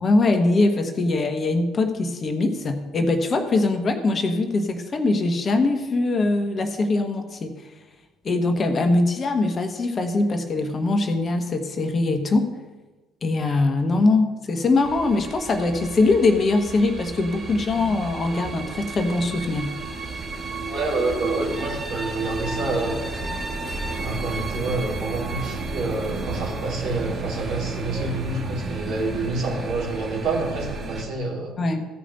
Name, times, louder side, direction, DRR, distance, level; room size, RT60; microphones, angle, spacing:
voice 1, 0.0-7.5 8.2-12.5 13.2-19.7 31.6-31.9, left 2 dB, 40° left, 7 dB, 1.2 m, -22 dB
sound 1, 14.8-31.0, right 3 dB, 35° right, 1.8 m, -32 dB
voice 2, 20.7-23.0 24.0-31.5, right 2 dB, 65° right, -3 dB, 3.1 m, -28 dB
15.0 x 5.1 x 5.6 m, 1.2 s
figure-of-eight pair, 55°, 0 cm